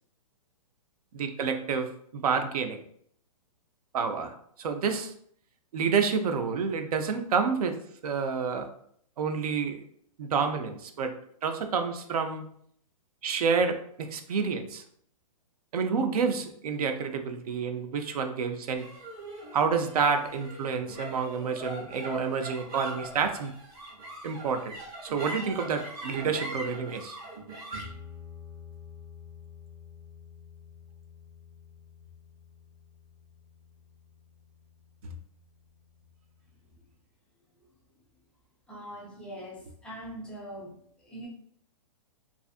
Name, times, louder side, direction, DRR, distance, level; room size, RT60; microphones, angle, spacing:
voice 1, 1.1-2.8 3.9-5.1 5.7-8.7 9.2-9.8 10.2-11.1 11.4-12.4 13.2-14.8 15.7-18.9 19.5-23.5 24.2-24.8 25.0-27.2, right 5 dB, 75° right, 6 dB, 0.5 m, -29 dB
sound 1, 18.7-35.3, right 1 dB, 20° right, 0.7 m, -43 dB
voice 2, 38.7-41.3, equal, 5° left, -5 dB, 0.3 m, -43 dB
2.5 x 2.4 x 2.4 m, 0.65 s
hypercardioid pair, 145°, 19 cm